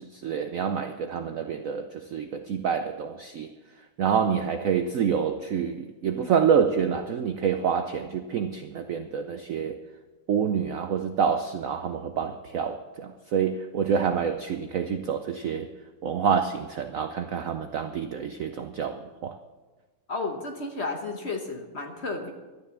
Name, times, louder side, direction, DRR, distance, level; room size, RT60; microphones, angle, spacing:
voice 1, 0.0-3.5 4.0-9.8 10.3-15.7 16.0-19.3, right 7 dB, 85° right, 0.7 m, -27 dB
voice 2, 20.1-22.3, left 3 dB, 40° left, 1.1 m, -32 dB
12.5 x 9.8 x 7.0 m
omnidirectional pair, 2.2 m